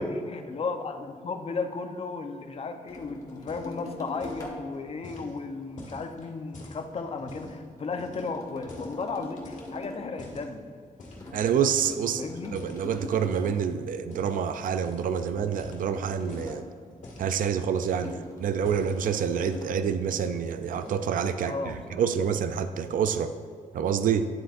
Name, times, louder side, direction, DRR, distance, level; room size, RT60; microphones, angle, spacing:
voice 1, 0.0-10.7 12.1-12.6 21.4-22.1, left 4 dB, 45° left, 6 dB, 0.7 m, -35 dB
sound 1, 2.9-4.7 7.3-10.1 11.2-13.7 15.2-16.7 18.0-19.8, left 2 dB, 25° left, 1.5 m, -42 dB
sound 2, 3.3-3.9 4.1-4.5 5.0-7.6 8.0-9.0 9.4-10.5 11.0-11.4 11.7-13.6 14.1-14.4 14.8-15.1 15.4-16.6 17.0-17.3 17.7-18.2 18.5-19.7 20.1-20.3 20.6-21.1, left 1 dB, 65° left, 2.0 m, -46 dB
voice 2, 11.3-12.2 12.5-16.6 17.2-21.5 21.9-23.3 23.7-24.3, right 7 dB, 75° right, 10 dB, 0.4 m, -27 dB
10.5 x 7.7 x 2.5 m, 2.2 s
cardioid pair, 105°, 14 cm